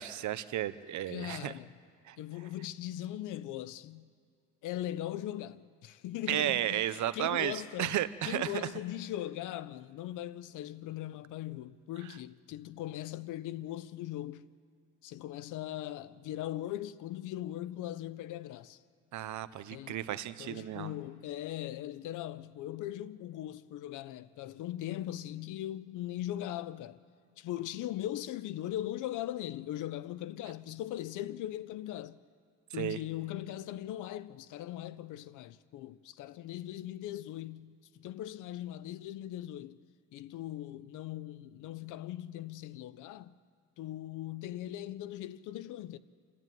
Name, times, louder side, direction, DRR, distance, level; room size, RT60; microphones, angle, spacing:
voice 1, 0.0-1.5 2.1-2.2 6.3-7.5 7.8-8.7 19.1-20.9 32.8-33.0, right 12 dB, 75° right, 0.9 m, -33 dB
voice 2, 1.1-1.7 2.2-4.1 4.6-8.0 8.2-14.4 15.0-18.8 19.7-20.0 20.4-27.0 27.4-32.2 32.7-39.8 40.1-43.3 43.8-46.0, left 13 dB, 90° left, 0.7 m, -40 dB
29.0 x 12.0 x 9.3 m
cardioid pair, 90°, 30 cm